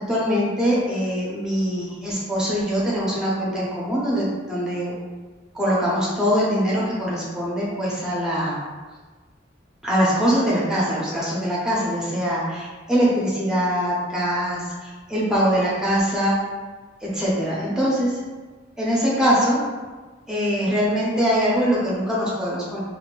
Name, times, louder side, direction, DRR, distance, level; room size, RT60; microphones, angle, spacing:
voice 1, 0.0-4.9 5.5-8.6 9.8-16.4 17.0-18.2 18.8-19.6 20.3-22.8, equal, 5° right, -6 dB, 0.7 m, -23 dB
2.7 x 2.5 x 3.0 m, 1.3 s
head